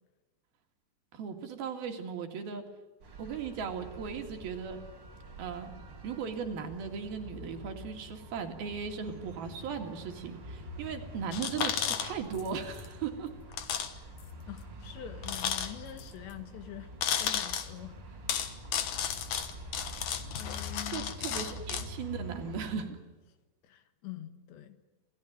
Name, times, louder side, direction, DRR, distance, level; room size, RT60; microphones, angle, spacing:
voice 1, 1.1-2.6 3.2-4.8 5.4-5.7 6.0-13.3 20.9-23.0, right 6 dB, 60° right, 4 dB, 3.8 m, -37 dB
sound 1, 3.0-22.7, equal, 35° right, 3.3 m, -46 dB
sound 2, 11.3-12.5 12.7-12.9 13.5-13.9 14.2-14.3 15.2-16.0 17.0-17.7 18.3-21.9, left 9 dB, 60° left, 2.1 m, -33 dB
voice 2, 14.5-16.9 17.2-18.0 20.3-21.1 21.8-21.9 23.6-24.8, left 12 dB, 80° left, 10 dB, 3.7 m, -45 dB
28.0 x 18.0 x 9.4 m, 1.2 s
omnidirectional pair, 5.0 m